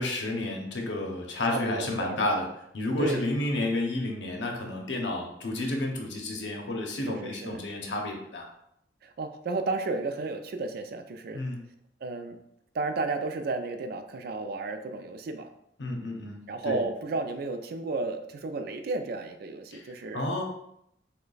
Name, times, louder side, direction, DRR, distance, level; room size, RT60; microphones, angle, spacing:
voice 1, 0.0-2.5 2.7-8.5 11.3-11.6 15.8-16.8 19.7-20.4, left 2 dB, 80° left, 2 dB, 0.7 m, -31 dB
voice 2, 1.5-2.3 3.0-3.2 7.0-7.6 9.0-11.4 12.0-12.4 12.7-15.5 16.5-20.3, right 3 dB, 60° right, 7 dB, 0.3 m, -33 dB
3.1 x 2.2 x 3.9 m, 0.76 s
head